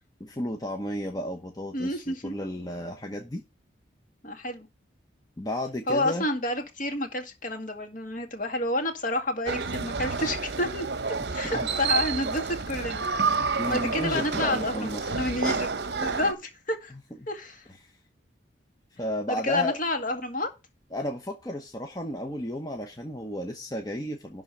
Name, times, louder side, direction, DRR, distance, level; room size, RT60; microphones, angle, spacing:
voice 1, 0.2-3.4 5.4-6.3 11.1-11.3 11.5-11.7 13.4-15.3 17.8-18.0 19.0-19.8 20.9-24.4, left 1 dB, 20° left, 1.0 m, -33 dB
voice 2, 1.7-2.3 4.2-4.7 5.9-10.9 11.3-13.0 13.7-15.7 16.0-16.9 17.3-17.6 19.3-20.5, left 1 dB, 45° left, 2.0 m, -29 dB
sound 1, 9.5-16.3, right 4 dB, 60° right, 0.9 m, -29 dB
11.5 x 3.8 x 6.8 m
head